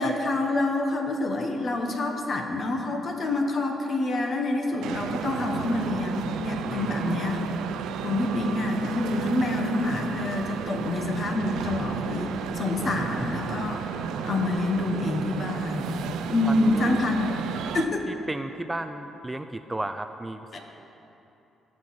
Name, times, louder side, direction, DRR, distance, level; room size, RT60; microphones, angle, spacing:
voice 1, 0.0-7.4 8.0-13.8 14.2-17.4 17.7-18.1 20.5-20.6, left 2 dB, 45° left, 3 dB, 1.4 m, -27 dB
sound 1, 4.8-17.9, right 8 dB, 85° right, 0.5 m, -33 dB
voice 2, 6.7-7.4 16.5-17.0 18.1-20.6, right 2 dB, 15° right, 8 dB, 0.4 m, -34 dB
18.5 x 6.2 x 4.3 m, 3.0 s
cardioid pair, 90°, 0 cm